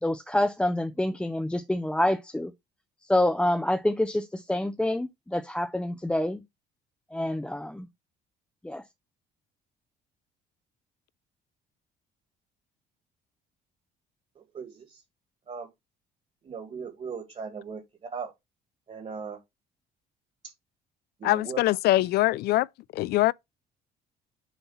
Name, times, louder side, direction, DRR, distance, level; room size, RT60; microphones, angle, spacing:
voice 1, 0.0-2.5 3.1-6.4 7.1-7.9 8.6-8.8, left 1 dB, 5° left, 0.6 m, -27 dB
voice 2, 16.5-17.8 18.1-18.3 18.9-19.4 21.2-21.6, right 5 dB, 40° right, 2.0 m, -37 dB
voice 3, 21.2-22.7 22.9-23.3, left 16 dB, 70° left, 0.4 m, -23 dB
7.2 x 2.8 x 5.6 m
cardioid pair, 110°, 17 cm